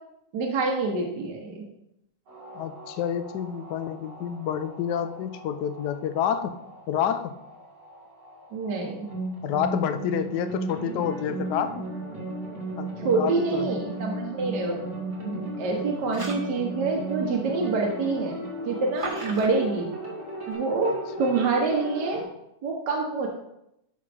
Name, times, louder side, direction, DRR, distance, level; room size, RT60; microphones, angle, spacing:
voice 1, 0.3-1.7 8.5-9.1 13.0-18.4 18.7-19.9 20.5-22.3 22.6-23.3, right 3 dB, 65° right, 0 dB, 1.6 m, -27 dB
sound 1, 2.3-22.2, right 2 dB, 90° right, 3.1 m, -36 dB
voice 2, 2.5-6.6 6.9-7.3 9.4-11.9 12.8-13.6 21.2-21.3, left 9 dB, 70° left, 9 dB, 1.1 m, -29 dB
sound 2, 16.0-16.6 18.9-19.5, right 3 dB, 25° right, 0.7 m, -36 dB
12.0 x 5.5 x 3.4 m, 0.83 s
omnidirectional pair, 2.0 m